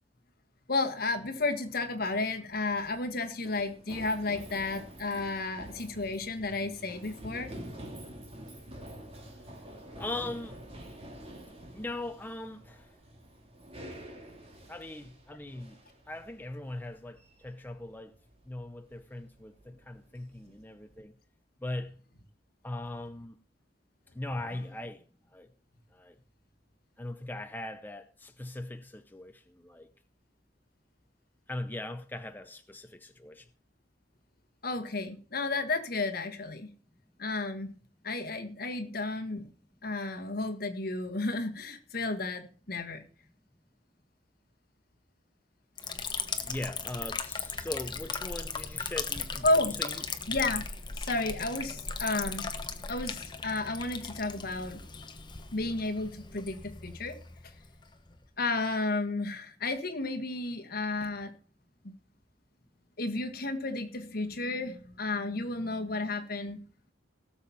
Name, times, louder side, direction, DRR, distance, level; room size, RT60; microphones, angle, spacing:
voice 1, 0.7-7.5 34.6-36.7 37.2-37.7 38.0-39.5 39.8-43.1 49.4-49.7 50.3-50.6 50.9-52.5 52.9-54.8 55.5-57.2 58.4-61.3 63.0-66.6, left 2 dB, 60° left, 1.6 m, -32 dB
Run, 2.4-21.0, right 1 dB, 35° right, 2.4 m, -48 dB
voice 2, 9.9-10.6 11.7-13.0 14.7-15.8 16.1-18.2 18.5-21.1 21.6-22.0 22.6-23.4 24.1-25.1 25.3-25.5 25.9-26.2 27.0-29.9 31.5-33.5 46.5-49.5 49.8-50.0, left 1 dB, 10° left, 0.6 m, -40 dB
Liquid, 45.8-58.2, left 5 dB, 25° left, 1.1 m, -38 dB
17.5 x 7.2 x 4.3 m
head